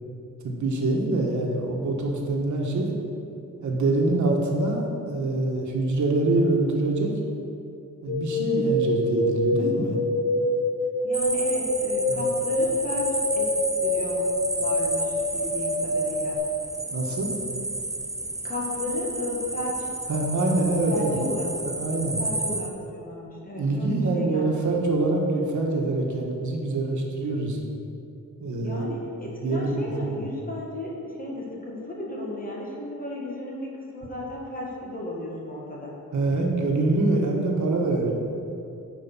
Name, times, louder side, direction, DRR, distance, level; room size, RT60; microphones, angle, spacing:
voice 1, 0.4-2.9 3.6-7.2 8.0-10.0 12.1-12.3 16.9-17.3 20.1-21.2 21.7-22.2 23.5-27.6 28.4-28.9 29.4-30.1 36.1-38.1, right 2 dB, 60° right, 0 dB, 1.4 m, -25 dB
sound 1, 8.1-16.4, left 1 dB, 45° left, 1.4 m, -26 dB
voice 2, 11.0-13.5 13.8-14.3 14.6-16.4 18.4-20.0 20.9-21.5 22.2-24.7 28.6-35.9, left 1 dB, 25° left, -4 dB, 1.8 m, -34 dB
sound 2, 11.1-22.7, right 2 dB, 10° right, 0.7 m, -31 dB
9.6 x 4.7 x 6.1 m, 2.7 s
wide cardioid pair, 120°, 32 cm